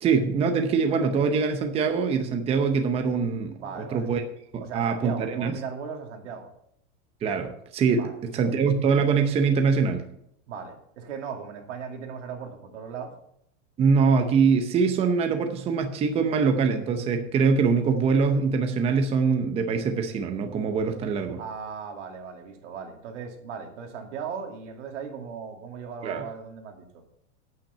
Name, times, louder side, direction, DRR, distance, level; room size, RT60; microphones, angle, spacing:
voice 1, 0.0-4.2 4.5-5.5 7.2-10.0 13.8-21.4 26.0-26.2, right 5 dB, 15° right, 6 dB, 0.7 m, -23 dB
voice 2, 3.6-4.1 4.6-6.5 8.0-8.1 10.5-13.1 21.4-27.0, right 6 dB, 85° right, 3 dB, 2.5 m, -37 dB
8.9 x 8.5 x 5.6 m, 0.72 s
supercardioid pair, 160°, 35 cm